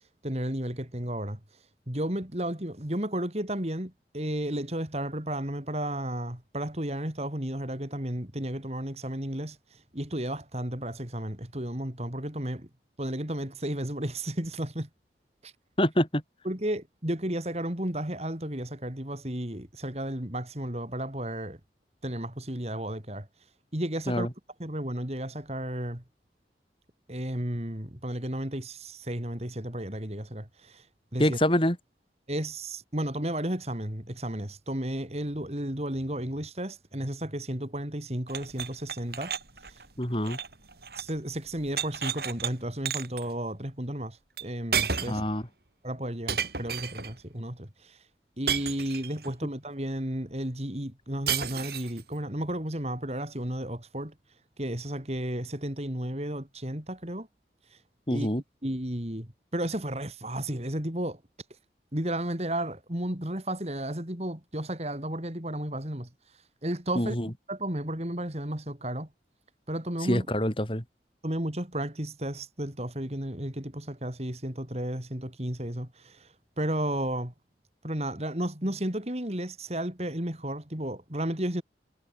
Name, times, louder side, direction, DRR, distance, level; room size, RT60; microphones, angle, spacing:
voice 1, 0.2-1.4 1.9-9.6 9.9-12.7 13.0-14.9 15.4-15.5 16.5-21.6 22.0-23.3 23.7-24.3 24.6-26.0 27.1-30.8 31.1-31.4 32.3-39.3 41.0-45.2 45.8-48.0 48.4-54.1 54.6-57.3 58.1-58.3 58.6-61.2 61.9-66.1 66.6-67.2 67.5-69.1 69.7-70.3 71.2-76.3 76.6-77.3 77.8-81.6, right 1 dB, 35° right, 3.6 m, -33 dB
voice 2, 15.8-16.2 24.1-24.3 31.2-31.8 40.0-40.4 45.1-45.4 58.1-58.4 67.0-67.3 70.1-70.8, left 1 dB, 30° left, 5.5 m, -26 dB
sound 1, 38.3-41.2 41.5-42.5 42.9-43.2 44.4-44.5 44.7-45.3 46.3-47.1 48.5-49.3 51.3-52.0, right 7 dB, 60° right, 5.5 m, -32 dB
head